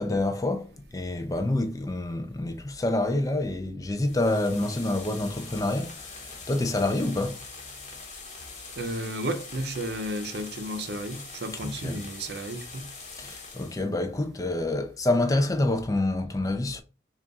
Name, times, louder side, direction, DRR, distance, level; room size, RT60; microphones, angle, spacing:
voice 1, 0.0-7.4 11.6-12.0 13.2-16.8, left 2 dB, 20° left, 0.4 m, -27 dB
sound 1, 3.9-13.9, left 4 dB, 40° left, 0.9 m, -43 dB
voice 2, 8.8-12.9, right 1 dB, 70° right, 0.6 m, -33 dB
3.5 x 2.4 x 3.9 m
head